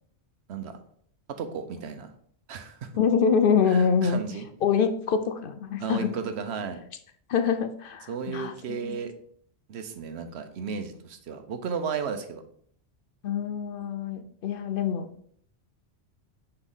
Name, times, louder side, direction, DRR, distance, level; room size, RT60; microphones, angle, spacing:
voice 1, 1.3-2.1 2.5-2.9 3.7-4.5 5.8-6.8 8.1-9.1 9.7-12.4, right 6 dB, 80° right, 8 dB, 1.0 m, -34 dB
voice 2, 3.0-4.2 4.6-6.1 7.3-9.0 13.2-15.1, left 6 dB, 60° left, 10 dB, 0.7 m, -25 dB
6.2 x 4.4 x 3.8 m, 0.63 s
omnidirectional pair, 1.1 m